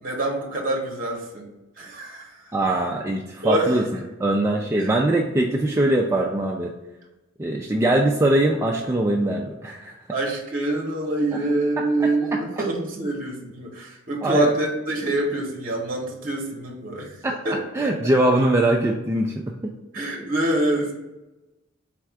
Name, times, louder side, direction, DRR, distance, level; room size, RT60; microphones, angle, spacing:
voice 1, 0.0-1.5 1.8-2.5 3.4-3.7 4.5-4.9 10.1-17.1 17.4-17.9 19.9-20.9, right 2 dB, 45° right, 1 dB, 0.8 m, -25 dB
voice 2, 2.5-3.8 4.2-6.7 7.4-9.9 11.8-12.1 14.2-14.5 17.2-17.4 17.7-19.7, right 1 dB, 15° right, 0 dB, 0.3 m, -22 dB
4.2 x 2.3 x 4.5 m, 1.0 s
head